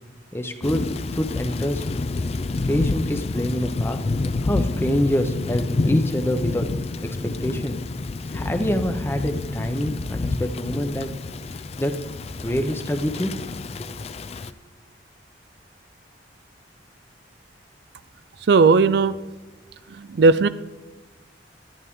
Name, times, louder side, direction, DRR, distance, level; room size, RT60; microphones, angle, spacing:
voice 1, 0.3-1.9 2.7-4.0 4.4-6.7 7.0-7.1 7.4-7.8 8.3-11.1 11.8-12.0 12.4-13.3 13.8-13.9, equal, 15° left, 7 dB, 0.8 m, -25 dB
Thunder / Rain, 0.6-14.5, left 3 dB, 35° left, 0.4 m, -28 dB
voice 2, 18.5-19.1 20.0-20.5, right 4 dB, 60° right, 14 dB, 0.4 m, -16 dB
12.0 x 11.0 x 3.7 m, 1.3 s
head